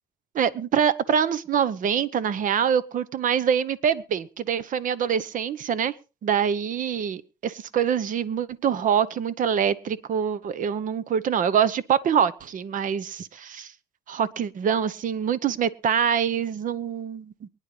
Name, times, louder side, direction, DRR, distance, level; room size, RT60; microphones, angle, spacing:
voice 1, 0.3-5.9 6.2-13.7 14.1-17.5, right 8 dB, 50° right, 1.0 m, -25 dB
23.5 x 10.0 x 3.3 m
cardioid pair, 110°, 17 cm